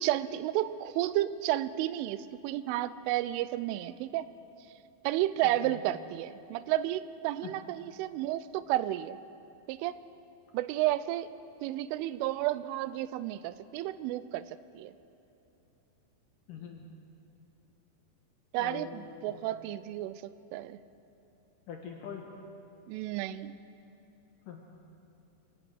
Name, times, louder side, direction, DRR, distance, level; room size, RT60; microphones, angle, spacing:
voice 1, 0.0-4.3 5.0-9.2 9.7-9.9 10.5-11.3 11.6-14.9 18.5-20.8 22.9-23.6, right 14 dB, 90° right, 15 dB, 3.2 m, -32 dB
voice 2, 16.5-16.9 18.6-19.4 21.7-22.3 24.5-24.7, left 7 dB, 65° left, 1 dB, 2.2 m, -43 dB
23.5 x 18.5 x 6.4 m, 3.0 s
omnidirectional pair, 5.5 m